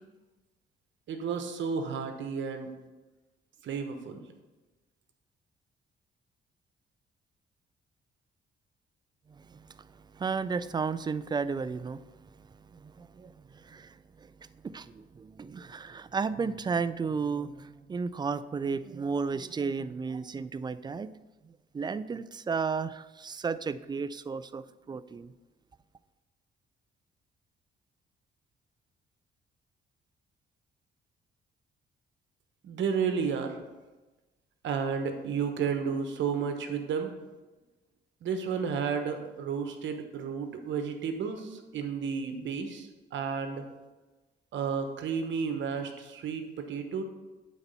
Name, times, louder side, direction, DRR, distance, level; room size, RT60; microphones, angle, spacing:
voice 1, 1.1-2.7 3.6-4.2 32.6-33.6 34.6-37.1 38.2-43.6 44.5-47.0, right 6 dB, 70° right, 6 dB, 1.1 m, -32 dB
voice 2, 9.3-21.1 21.4-25.3, right 5 dB, 20° right, 15 dB, 0.3 m, -34 dB
8.6 x 4.1 x 5.5 m, 1.1 s
cardioid pair, 90°, 20 cm